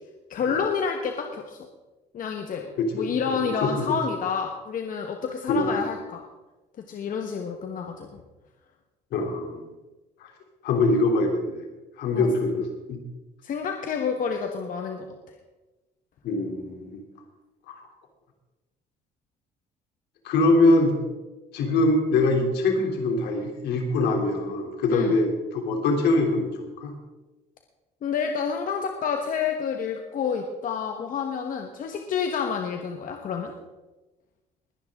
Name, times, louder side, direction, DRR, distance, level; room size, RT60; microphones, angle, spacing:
voice 1, 0.3-1.6 2.1-6.2 6.9-8.2 12.1-12.3 13.4-15.1 24.9-25.2 28.0-33.5, left 6 dB, 55° left, 4 dB, 1.3 m, -29 dB
voice 2, 2.8-3.7 5.5-5.7 9.1-9.6 10.2-10.3 10.6-11.7 12.0-13.0 16.2-17.0 17.7-17.8 20.2-20.9 21.5-26.9, left 2 dB, 75° left, 2 dB, 3.1 m, -23 dB
21.0 x 10.5 x 3.7 m, 1.1 s
cardioid pair, 110°, 17 cm